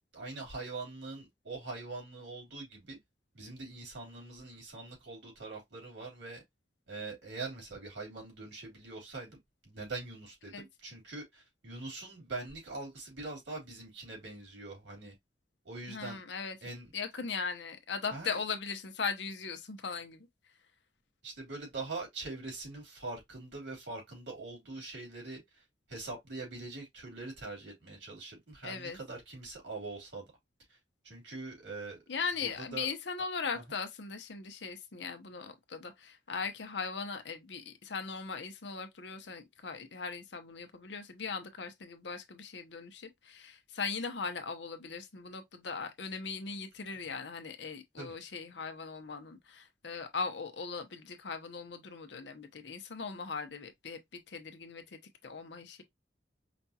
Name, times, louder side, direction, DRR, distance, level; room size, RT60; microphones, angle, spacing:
voice 1, 0.1-3.0 3.3-6.4 6.9-9.4 9.6-15.1 15.6-16.2 16.6-16.9 18.1-18.4 21.2-25.6 25.9-30.3 30.7-30.8 31.0-32.0 32.4-32.9 48.0-48.1, right 3 dB, 85° right, 3.1 m, -43 dB
voice 2, 15.9-16.6 16.9-20.3 28.6-29.0 32.1-55.8, left 5 dB, 70° left, 0.8 m, -39 dB
5.1 x 2.3 x 2.8 m
head